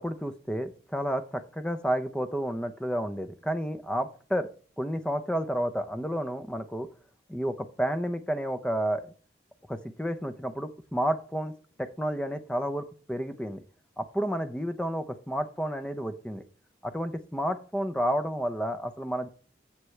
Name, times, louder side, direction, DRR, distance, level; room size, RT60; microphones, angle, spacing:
voice 1, 0.0-4.5 4.8-6.9 7.3-9.1 9.7-11.5 11.8-13.6 14.0-16.5 16.8-19.3, equal, 5° left, 9 dB, 0.6 m, -31 dB
16.0 x 6.0 x 3.3 m, 0.40 s
head